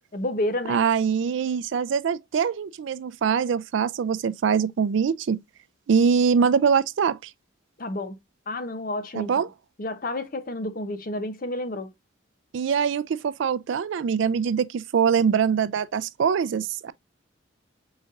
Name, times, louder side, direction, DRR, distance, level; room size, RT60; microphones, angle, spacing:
voice 1, 0.1-0.8 7.8-8.2 8.5-9.4 9.8-11.9, left 1 dB, 45° left, 0.7 m, -30 dB
voice 2, 0.7-5.4 5.9-7.3 9.1-9.5 12.5-16.9, right 6 dB, 65° right, 0.3 m, -23 dB
5.1 x 4.0 x 2.4 m
head